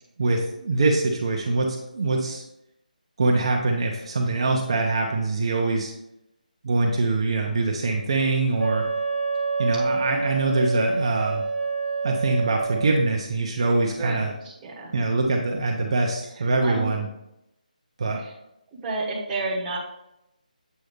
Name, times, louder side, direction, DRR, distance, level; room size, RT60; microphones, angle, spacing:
voice 1, 0.2-2.4 3.2-5.9 6.6-8.8 9.6-11.4 12.0-14.3 14.9-17.1 18.0-18.2, right 3 dB, 40° right, 0 dB, 0.7 m, -23 dB
Wind instrument woodwind instrument, 8.6-13.1, right 4 dB, 85° right, 0.8 m, -27 dB
voice 2, 14.0-14.9 16.3-16.9 18.2-18.3 18.8-19.8, right 2 dB, 10° right, -7 dB, 1.0 m, -31 dB
7.9 x 2.7 x 5.0 m, 0.85 s
figure-of-eight pair, 170°, 5 cm